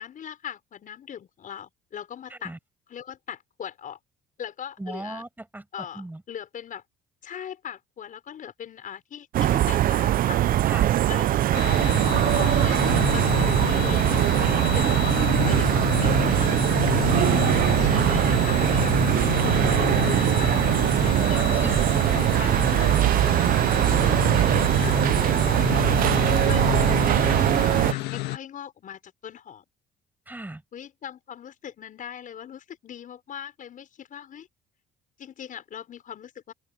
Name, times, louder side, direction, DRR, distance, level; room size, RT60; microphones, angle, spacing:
voice 1, 0.0-2.5 2.9-4.0 4.4-5.3 5.7-6.8 7.2-10.4 11.1-11.9 12.4-16.5 17.5-20.6 21.0-21.9 22.1-23.0 23.9-26.0 26.2-29.6 30.7-34.5 35.2-36.5, left 9 dB, 50° left, 5.7 m, -40 dB
voice 2, 4.8-6.2 10.7-11.0 21.3-21.7 22.4-22.5 26.5-26.6 30.3-30.6, right 1 dB, 10° right, 6.2 m, -39 dB
sound 1, 9.3-27.9, right 13 dB, 55° right, 0.6 m, -21 dB
sound 2, 11.5-28.4, left 19 dB, 80° left, 1.6 m, -29 dB
open air
supercardioid pair, 85°, 17 cm